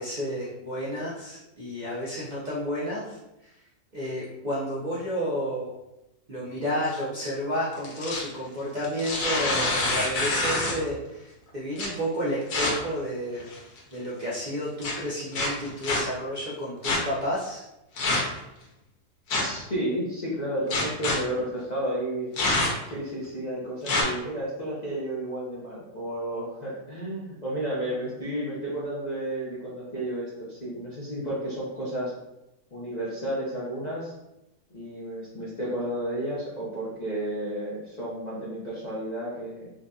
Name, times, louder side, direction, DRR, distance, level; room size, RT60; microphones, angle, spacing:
voice 1, 0.0-3.5 3.9-5.8 6.3-13.5 13.9-17.6, equal, 65° right, -7 dB, 0.4 m, -31 dB
sound 1, 7.7-8.3 8.8-10.9 11.8-11.9 12.5-12.7 13.4-13.8 14.8-14.9 15.3-16.0 16.8-17.0 18.0-18.4 19.3-19.6 20.7-21.2 22.4-22.9 23.8-24.0, left 2 dB, 70° left, 1.3 m, -26 dB
voice 2, 19.4-22.3 22.9-32.1 32.7-34.1 34.7-39.7, right 1 dB, 45° left, -8 dB, 0.5 m, -32 dB
3.9 x 2.6 x 2.3 m, 0.91 s
omnidirectional pair, 1.7 m